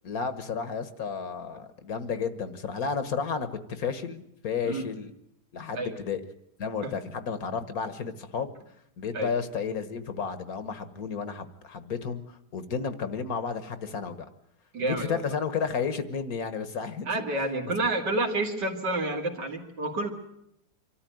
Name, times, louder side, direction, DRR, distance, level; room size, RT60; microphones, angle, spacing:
voice 1, 0.0-5.1 5.5-6.2 6.6-8.5 9.0-14.3 14.8-17.2, left 6 dB, 60° left, 11 dB, 1.7 m, -32 dB
voice 2, 14.7-15.3 17.1-20.1, right 2 dB, 90° right, 3 dB, 3.1 m, -29 dB
25.0 x 13.5 x 9.2 m, 0.77 s
omnidirectional pair, 1.8 m